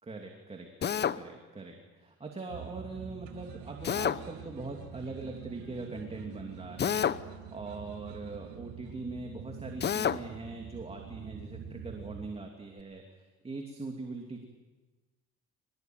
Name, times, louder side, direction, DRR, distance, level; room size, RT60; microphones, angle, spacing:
voice 1, 0.0-14.5, right 3 dB, 20° right, 2 dB, 2.8 m, -42 dB
Drill, 0.8-1.2 3.8-4.2 6.8-7.2 9.8-10.2, left 8 dB, 35° left, 0.8 m, -28 dB
sound 1, 2.5-12.3, right 7 dB, 85° right, 2.2 m, -46 dB
24.5 x 20.0 x 9.4 m, 1.2 s
cardioid pair, 120°, 29 cm